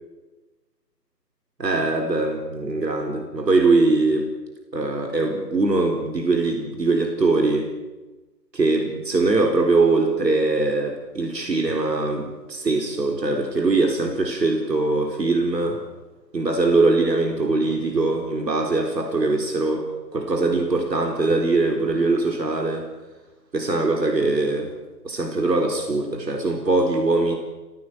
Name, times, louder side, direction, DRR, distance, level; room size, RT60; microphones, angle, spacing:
voice 1, 1.6-4.3 4.7-7.7 8.5-15.8 16.3-22.9 23.5-24.7 25.0-27.3, right 3 dB, 75° right, 3 dB, 4.6 m, -22 dB
29.5 x 17.0 x 7.8 m, 1.2 s
figure-of-eight pair, 150°, 49 cm